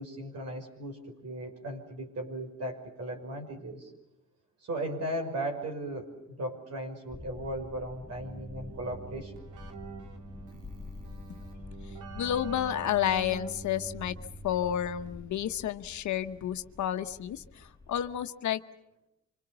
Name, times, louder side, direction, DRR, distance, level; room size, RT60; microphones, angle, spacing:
voice 1, 0.0-3.9 4.6-9.3, right 1 dB, 55° right, 2 dB, 5.9 m, -37 dB
sound 1, 7.1-18.2, left 4 dB, 10° left, 2.6 m, -48 dB
Keyboard (musical), 8.2-15.5, right 4 dB, 80° right, 3.3 m, -45 dB
voice 2, 12.1-14.1 14.4-18.6, left 10 dB, 70° left, 9 dB, 1.1 m, -31 dB
26.5 x 26.0 x 6.9 m, 0.87 s
cardioid pair, 90°, 30 cm